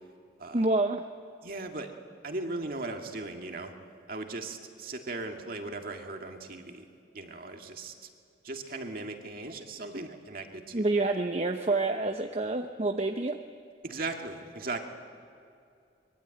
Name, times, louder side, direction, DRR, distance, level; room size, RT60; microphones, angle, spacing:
voice 1, 0.5-1.1 9.9-10.0 10.7-13.4, right 2 dB, 35° right, 5 dB, 0.8 m, -28 dB
voice 2, 1.4-1.9 2.2-3.7 4.1-6.8 7.1-7.9 8.4-10.9 13.8-14.9, right 2 dB, 55° right, 3 dB, 2.1 m, -38 dB
24.5 x 22.5 x 9.0 m, 2.5 s
head